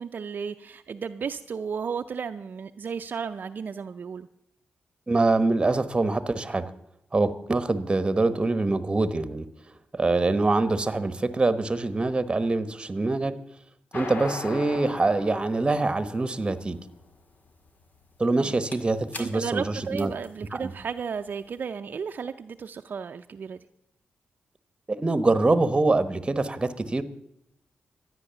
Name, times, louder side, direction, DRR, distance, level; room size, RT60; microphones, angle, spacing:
voice 1, 0.0-4.3 18.4-18.6 19.2-23.6, right 6 dB, 60° right, 7 dB, 0.5 m, -34 dB
voice 2, 5.1-6.7 7.1-9.5 9.9-13.3 13.9-16.8 18.2-20.1 20.5-20.7 25.0-27.0, right 2 dB, 25° right, 13 dB, 1.1 m, -24 dB
sound 1, 13.9-21.5, left 3 dB, 55° left, 1.9 m, -40 dB
13.0 x 9.6 x 6.9 m, 0.76 s
cardioid pair, 75°, 4 cm